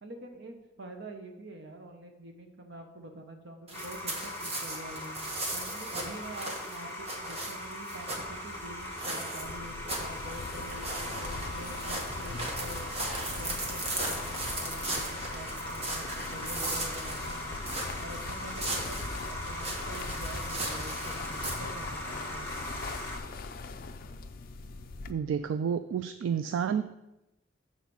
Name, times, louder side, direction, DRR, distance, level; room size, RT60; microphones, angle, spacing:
voice 1, 0.0-5.2 5.5-12.9 13.3-17.6 18.0-22.7, right 1 dB, 65° right, 4 dB, 1.0 m, -46 dB
sound 1, 3.7-23.2, left 1 dB, 10° left, 1.2 m, -40 dB
sound 2, 3.7-21.5, right 1 dB, 35° right, 1.2 m, -38 dB
sound 3, 9.4-25.1, left 3 dB, 50° left, 0.4 m, -41 dB
voice 2, 25.1-26.8, right 7 dB, 80° right, 10 dB, 0.3 m, -30 dB
7.1 x 4.0 x 6.0 m, 0.94 s
head